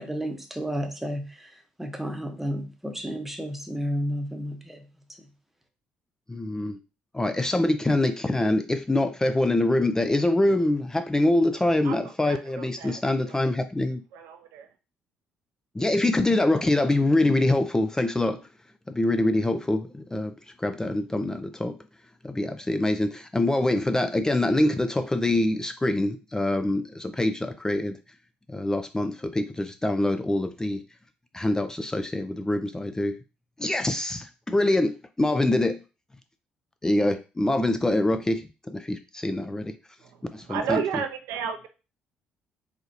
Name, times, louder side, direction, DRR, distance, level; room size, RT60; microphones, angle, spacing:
voice 1, 0.0-1.5 1.8-4.8, equal, 5° right, 5 dB, 0.9 m, -32 dB
voice 2, 6.3-6.8 7.1-14.0 15.7-18.4 18.9-21.7 22.2-28.0 28.5-30.8 31.3-33.2 33.6-35.8 36.8-39.7 40.3-41.0, left 1 dB, 15° left, 9 dB, 0.3 m, -25 dB
voice 3, 11.8-13.0 13.2-13.3 14.1-14.7 40.5-41.7, right 7 dB, 70° right, 5 dB, 0.5 m, -32 dB
4.0 x 2.8 x 2.7 m, 0.31 s
hypercardioid pair, 50°, 4 cm